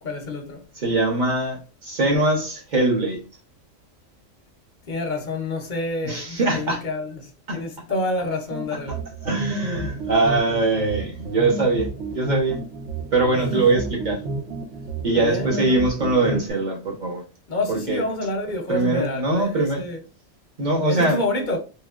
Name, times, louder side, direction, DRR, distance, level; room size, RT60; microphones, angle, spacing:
voice 1, 0.0-0.6 4.9-9.0 13.7-13.8 15.1-15.8 17.5-20.0 20.9-21.6, left 2 dB, 50° left, 0.7 m, -28 dB
voice 2, 0.8-3.2 6.0-6.8 7.5-7.6 9.2-12.6 13.1-14.2 15.0-17.2 17.7-18.0 18.7-19.8 20.6-21.2, right 2 dB, 40° right, 1.1 m, -22 dB
sound 1, 8.5-16.5, right 3 dB, 65° right, 1.0 m, -31 dB
3.7 x 3.0 x 2.4 m
omnidirectional pair, 1.4 m